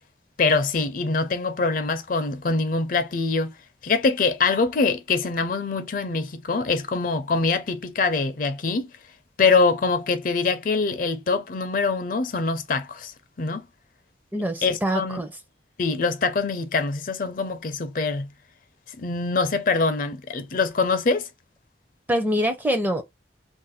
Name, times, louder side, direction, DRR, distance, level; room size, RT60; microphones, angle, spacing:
voice 1, 0.4-3.5 3.8-8.9 9.4-13.6 14.6-15.2 15.8-18.3 19.0-21.3, left 4 dB, 50° left, 0.5 m, -24 dB
voice 2, 14.3-15.3 22.1-23.0, equal, 10° right, 0.5 m, -24 dB
2.5 x 2.2 x 4.0 m
head